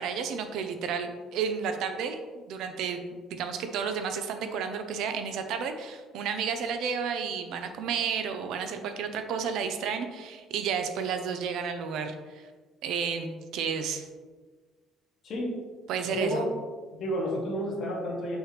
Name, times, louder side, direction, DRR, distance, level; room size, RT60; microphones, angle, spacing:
voice 1, 0.0-12.5 12.8-14.1 15.9-16.5, right 6 dB, 60° right, 7 dB, 0.6 m, -32 dB
voice 2, 16.1-16.5 16.9-18.4, equal, 40° left, -4 dB, 2.0 m, -30 dB
6.6 x 6.1 x 3.3 m, 1.4 s
cardioid pair, 180°, 0 cm